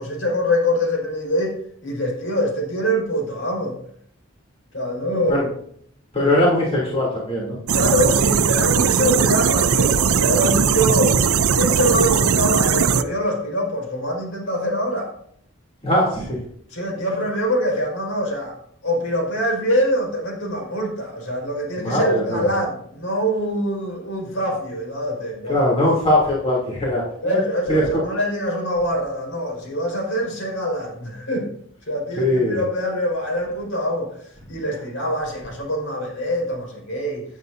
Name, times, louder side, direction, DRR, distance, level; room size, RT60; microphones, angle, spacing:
voice 1, 0.0-1.6 1.8-3.8 4.7-5.5 7.7-11.2 11.5-15.1 16.7-18.6 18.8-25.6 27.2-31.5 31.9-34.1 34.5-37.2, equal, 70° left, 0 dB, 5.0 m, -24 dB
voice 2, 6.1-7.6 15.8-16.4 21.8-22.5 25.5-27.4 27.7-28.0 32.2-32.6, left 1 dB, 30° left, -5 dB, 3.1 m, -20 dB
sound 1, 7.7-13.0, right 6 dB, 90° right, 0.6 m, -18 dB
17.0 x 9.2 x 2.7 m, 0.65 s
head